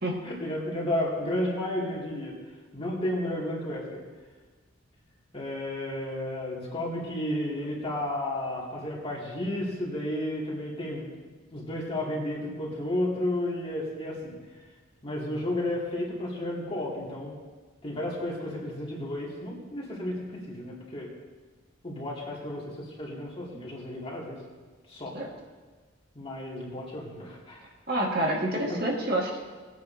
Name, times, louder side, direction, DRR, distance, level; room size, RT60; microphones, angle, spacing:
voice 1, 0.2-2.3 2.7-4.0 5.3-11.2 11.5-14.3 15.0-17.3 17.8-21.1 21.8-24.4 24.9-25.1 26.1-27.6 28.2-28.4 28.7-28.8, left 1 dB, 30° left, -5 dB, 2.5 m, -32 dB
voice 2, 27.9-29.4, right 1 dB, 50° right, -2 dB, 1.8 m, -27 dB
20.0 x 8.4 x 2.8 m, 1.4 s
head